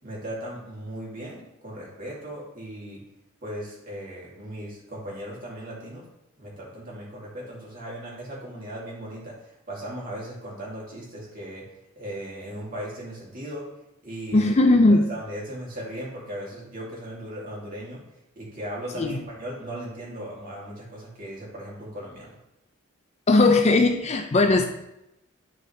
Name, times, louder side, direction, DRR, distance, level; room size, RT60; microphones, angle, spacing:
voice 1, 0.0-3.0 3.4-6.0 6.4-11.6 12.0-13.6 14.0-14.5 14.9-18.0 18.4-22.4, right 1 dB, 40° right, -5 dB, 2.5 m, -37 dB
voice 2, 14.3-15.1 19.0-19.2 23.3-24.6, left 2 dB, 30° left, 5 dB, 0.4 m, -18 dB
11.0 x 4.6 x 3.2 m, 0.89 s
head